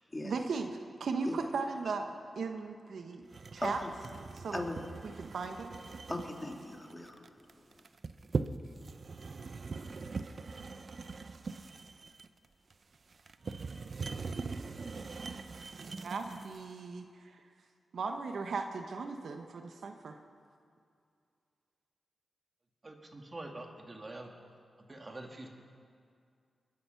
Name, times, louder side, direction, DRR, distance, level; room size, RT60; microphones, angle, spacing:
voice 1, 0.2-2.1 2.4-3.2 3.5-3.8 4.4-4.6 5.2-5.7 16.0-17.4 17.9-20.2, right 4 dB, 75° right, 6 dB, 1.0 m, -37 dB
sound 1, 3.3-16.6, right 4 dB, 60° right, 0.6 m, -41 dB
voice 2, 3.6-3.9 4.5-4.8 6.1-7.5, left 1 dB, 25° left, 2 dB, 2.4 m, -38 dB
voice 3, 22.8-24.3 24.9-25.5, right 2 dB, 40° right, 2 dB, 2.1 m, -45 dB
21.5 x 10.5 x 5.8 m, 2.3 s
cardioid pair, 45°, 0 cm